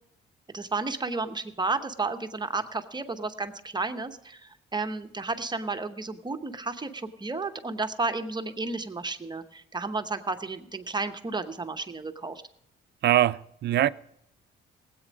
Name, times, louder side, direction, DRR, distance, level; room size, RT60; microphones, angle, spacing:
voice 1, 0.5-12.4, right 3 dB, 20° right, 0.9 m, -32 dB
voice 2, 13.0-13.9, right 13 dB, 60° right, 0.4 m, -22 dB
17.5 x 8.4 x 5.2 m
cardioid pair, 90°, 20 cm